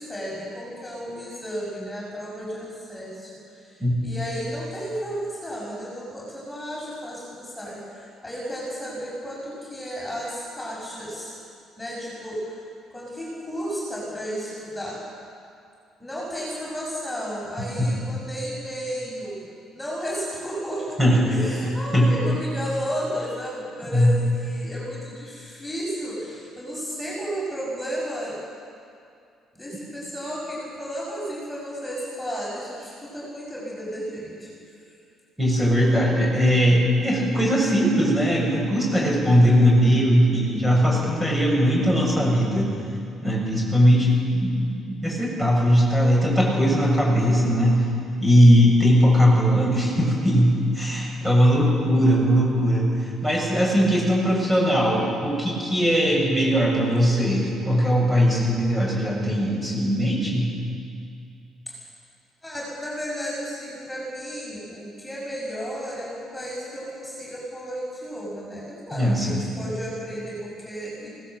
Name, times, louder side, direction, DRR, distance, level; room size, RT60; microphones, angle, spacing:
voice 1, 0.0-11.3 11.8-12.6 12.9-15.0 16.0-19.5 19.7-28.4 29.5-34.5 61.7-61.8 62.4-71.1, equal, 10° left, -5 dB, 6.2 m, -33 dB
voice 2, 35.4-42.7 43.2-47.9 48.2-60.5 68.9-69.4, equal, 15° right, -3 dB, 7.0 m, -19 dB
20.0 x 17.5 x 7.7 m, 2.4 s
cardioid pair, 100°, 0 cm